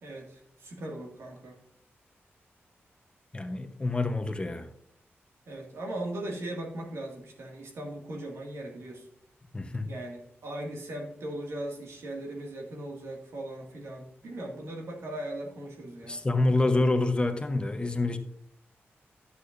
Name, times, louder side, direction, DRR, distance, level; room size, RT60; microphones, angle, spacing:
voice 1, 0.0-1.6 5.5-9.1 9.8-16.2, right 1 dB, 80° right, 2.0 m, -38 dB
voice 2, 3.3-4.7 9.5-9.9 16.1-18.2, left 2 dB, 20° left, 0.9 m, -27 dB
11.0 x 8.4 x 2.6 m
wide cardioid pair, 90°, 5 cm